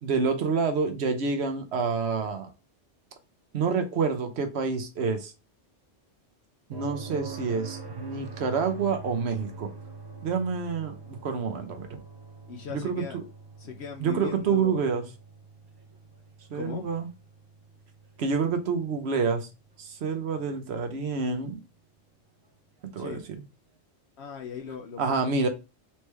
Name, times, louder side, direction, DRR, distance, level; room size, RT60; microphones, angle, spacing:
voice 1, 0.0-2.5 3.5-5.3 6.7-9.7 10.2-12.0 12.7-13.0 14.0-15.0 16.5-17.1 18.2-19.5 19.8-21.6 22.9-23.2 25.0-25.5, right 5 dB, 60° right, 1.0 m, -28 dB
sound 1, 6.7-20.6 22.8-22.9, right 5 dB, 35° right, 0.3 m, -45 dB
voice 2, 12.5-13.2 13.6-14.8 16.5-16.9 23.0-23.2 24.2-25.2, left 7 dB, 65° left, 0.8 m, -39 dB
4.3 x 3.2 x 3.3 m
omnidirectional pair, 1.3 m